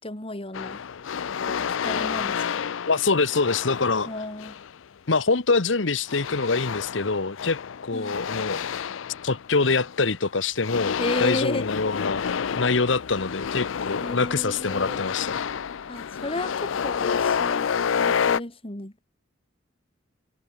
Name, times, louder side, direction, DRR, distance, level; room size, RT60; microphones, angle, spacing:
voice 1, 0.0-0.8 1.4-2.6 4.0-4.6 7.9-8.1 11.0-11.7 14.0-15.0 15.9-17.7 18.0-18.9, left 2 dB, 30° left, 3.4 m, -33 dB
sound 1, 0.5-4.7 6.1-10.2 10.6-18.4, left 7 dB, 90° left, 0.5 m, -29 dB
voice 2, 2.9-4.1 5.1-8.6 9.2-12.3 12.5-15.4, left 4 dB, 70° left, 1.2 m, -25 dB
head